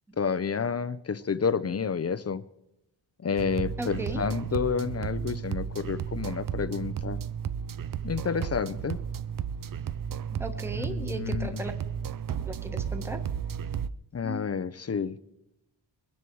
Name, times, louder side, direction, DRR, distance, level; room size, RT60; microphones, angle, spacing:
voice 1, 0.2-2.4 3.2-7.2 8.0-9.0 10.7-11.6 14.1-15.2, left 6 dB, 35° left, 16 dB, 0.5 m, -30 dB
sound 1, 3.4-13.9, right 8 dB, 45° right, 0.5 m, -33 dB
voice 2, 3.8-4.2 10.4-11.7 12.5-13.2 14.2-14.4, right 2 dB, 5° right, 7 dB, 1.1 m, -36 dB
22.0 x 10.0 x 4.6 m, 0.88 s
wide cardioid pair, 150°, 47 cm